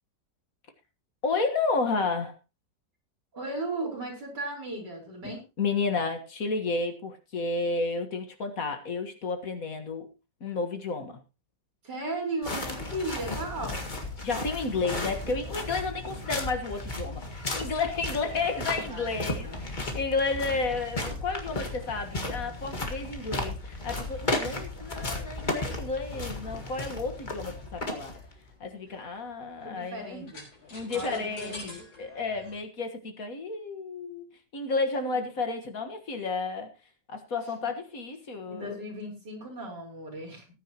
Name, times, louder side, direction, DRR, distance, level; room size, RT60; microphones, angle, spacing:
voice 1, 1.2-2.4 5.2-10.1 10.4-11.2 14.2-28.1 28.6-30.3 30.7-36.7 37.1-38.8, left 4 dB, 50° left, 6 dB, 1.9 m, -32 dB
voice 2, 3.3-5.4 11.8-13.8 16.1-16.2 18.7-19.6 22.1-22.7 29.6-30.4 30.9-31.7 35.0-35.2 38.5-40.5, right 1 dB, 65° right, -1 dB, 5.2 m, -36 dB
sound 1, 12.4-28.5, left 2 dB, 25° left, 1.8 m, -35 dB
sound 2, 27.1-32.6, left 2 dB, 80° left, 6.0 m, -48 dB
19.0 x 9.4 x 2.9 m, 0.26 s
omnidirectional pair, 2.0 m